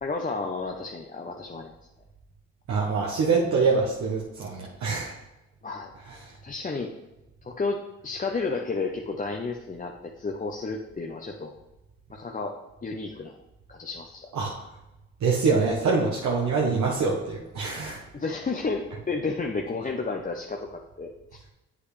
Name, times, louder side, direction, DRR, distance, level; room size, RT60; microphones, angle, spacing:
voice 1, 0.0-1.7 5.6-5.9 6.4-6.9 7.4-11.6 12.1-12.5 12.8-13.4 13.7-14.3 18.1-21.1, left 3 dB, 25° left, 1 dB, 0.8 m, -32 dB
voice 2, 2.7-5.1 14.3-14.5 15.2-18.0, right 4 dB, 65° right, -3 dB, 1.2 m, -25 dB
7.9 x 5.8 x 3.3 m, 0.98 s
supercardioid pair, 50°, 30 cm